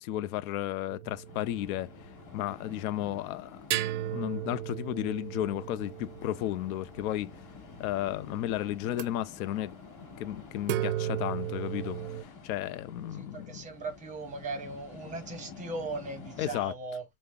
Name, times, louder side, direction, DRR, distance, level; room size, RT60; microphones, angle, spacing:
voice 1, 0.0-3.6 4.1-7.3 7.8-9.7 10.2-13.6 16.4-16.7, left 13 dB, 70° left, 0.5 m, -33 dB
sound 1, 0.9-2.1 3.7-7.4 8.9-9.1 10.6-12.2, right 13 dB, 55° right, 0.5 m, -35 dB
sound 2, 1.2-16.6, left 5 dB, 45° left, 2.1 m, -49 dB
sound 3, 2.3-12.0, left 2 dB, 15° left, 1.5 m, -59 dB
voice 2, 13.2-17.0, right 3 dB, 15° right, 0.7 m, -38 dB
5.2 x 2.0 x 2.3 m
supercardioid pair, 145°, 45 cm